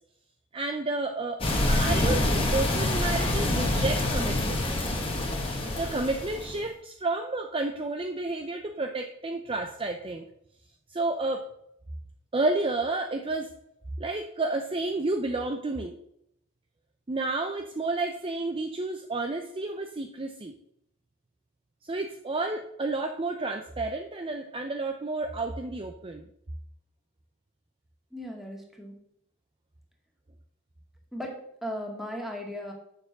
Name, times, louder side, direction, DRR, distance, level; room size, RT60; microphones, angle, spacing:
voice 1, 0.5-4.7 5.6-10.2 10.9-11.5 12.3-13.5 14.0-16.0 17.1-20.5 21.8-26.2, right 2 dB, 25° right, 5 dB, 0.6 m, -31 dB
sound 1, 1.4-6.7, left 1 dB, 25° left, 1.8 m, -26 dB
voice 2, 28.1-29.0 31.1-32.7, equal, ahead, 0 dB, 2.1 m, -37 dB
7.1 x 6.8 x 6.6 m, 0.76 s
head